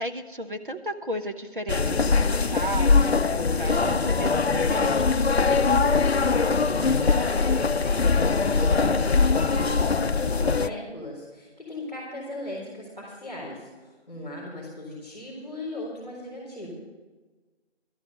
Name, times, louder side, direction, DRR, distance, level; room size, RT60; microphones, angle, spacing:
voice 1, 0.0-5.4, right 1 dB, 50° right, 5 dB, 1.1 m, -34 dB
sound 1, 1.7-10.7, left 4 dB, 65° left, 0.5 m, -22 dB
voice 2, 6.1-16.7, left 1 dB, 5° right, -18 dB, 3.1 m, -37 dB
12.5 x 8.7 x 7.8 m, 1.3 s
figure-of-eight pair, 175°, 34 cm